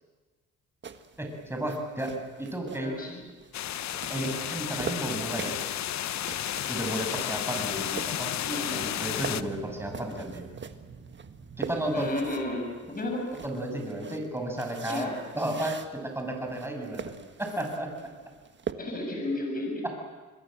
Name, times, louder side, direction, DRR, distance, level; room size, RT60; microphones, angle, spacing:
sound 1, 0.8-18.7, right 6 dB, 40° right, 1.6 m, -44 dB
voice 1, 1.2-2.1 2.4-2.9 4.1-5.6 6.7-8.3 8.7-10.5 11.6-12.1 13.4-15.1 15.3-17.1 17.4-17.9, right 1 dB, 10° right, 2 dB, 6.8 m, -33 dB
voice 2, 2.8-3.2 4.1-4.4 8.4-8.8 11.9-13.3 14.9-15.1 18.8-20.0, left 1 dB, 30° left, 1 dB, 7.4 m, -33 dB
sound 2, 3.5-9.4, left 11 dB, 65° left, 0.9 m, -32 dB
sound 3, 8.5-13.4, right 6 dB, 55° right, 7.0 m, -49 dB
26.5 x 21.0 x 7.8 m, 1.3 s
cardioid pair, 90°, 30 cm